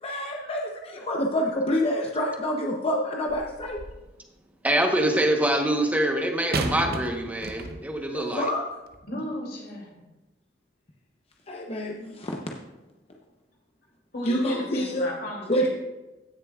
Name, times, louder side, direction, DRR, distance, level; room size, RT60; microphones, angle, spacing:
voice 1, 0.0-3.8 8.1-8.6 11.5-12.4 14.2-15.1 15.5-15.7, equal, 35° left, 0 dB, 0.8 m, -27 dB
sound 1, 3.3-4.1 6.5-8.1 8.9-9.0, right 3 dB, 60° right, 0.7 m, -33 dB
voice 2, 4.6-8.5, right 1 dB, 10° right, 2 dB, 1.0 m, -24 dB
voice 3, 9.1-10.0 14.1-15.7, left 1 dB, 60° left, -2 dB, 2.8 m, -35 dB
17.0 x 6.7 x 2.4 m, 1.1 s
head